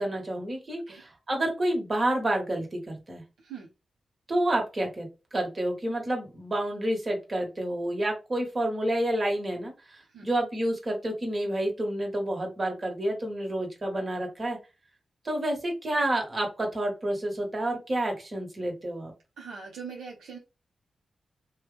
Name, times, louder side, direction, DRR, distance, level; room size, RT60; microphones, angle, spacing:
voice 1, 0.0-3.2 4.3-5.1 5.3-14.6 15.2-19.1, right 1 dB, 45° right, 1 dB, 1.5 m, -29 dB
voice 2, 19.4-20.4, right 6 dB, 85° right, -3 dB, 0.8 m, -41 dB
2.9 x 2.3 x 3.3 m, 0.28 s
supercardioid pair, 40°, 0 cm